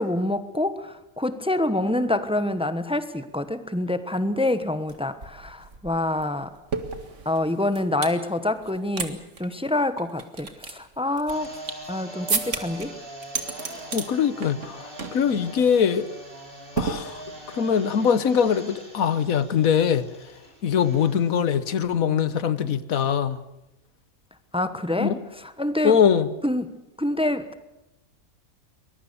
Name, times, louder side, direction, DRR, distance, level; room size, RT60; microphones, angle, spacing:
voice 1, 0.0-6.5 7.2-11.6 11.9-12.9 24.5-25.1 25.4-26.0 26.4-27.6, left 1 dB, 5° right, 1.0 m, -26 dB
sound 1, 4.9-5.0 5.2-8.2 8.6-9.1 9.3-9.5 10.0-11.9 12.3-12.9 13.2-14.1 14.4-14.7 15.0-15.2 15.6-15.8 16.8-17.5, right 4 dB, 60° right, 2.2 m, -31 dB
sound 2, 11.3-21.6, right 1 dB, 40° right, 5.0 m, -42 dB
voice 2, 13.9-16.1 16.8-17.2 17.5-20.1 20.6-23.4 25.0-25.2 25.8-26.3, left 7 dB, 85° left, 1.5 m, -22 dB
23.5 x 21.5 x 7.0 m
omnidirectional pair, 1.4 m